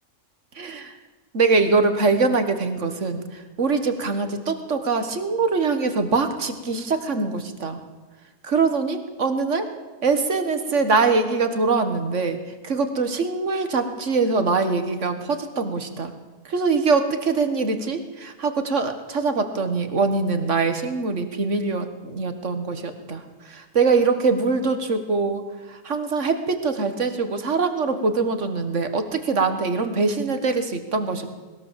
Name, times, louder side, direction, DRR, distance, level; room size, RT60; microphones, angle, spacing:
voice 1, 0.6-0.9 1.3-3.2 3.6-7.8 8.4-9.7 10.0-16.1 16.5-23.2 23.5-25.4 25.7-31.3, right 4 dB, 65° right, 8 dB, 1.9 m, -23 dB
20.5 x 18.0 x 7.5 m, 1.3 s
omnidirectional pair, 1.4 m